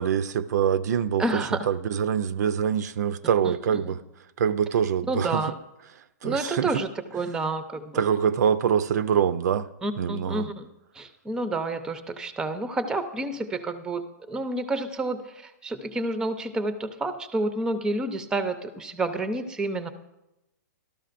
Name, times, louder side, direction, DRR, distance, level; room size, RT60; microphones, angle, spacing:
voice 1, 0.0-4.0 4.4-5.4 6.2-6.8 7.9-9.7 10.0-10.5, right 8 dB, 65° right, 0.4 m, -25 dB
voice 2, 1.2-1.6 3.4-3.5 3.8-3.9 5.1-5.6 6.2-8.0 9.8-10.7 11.0-14.0 14.3-19.9, right 2 dB, 5° right, 0.5 m, -29 dB
13.5 x 12.5 x 2.5 m
hypercardioid pair, 140°, 10 cm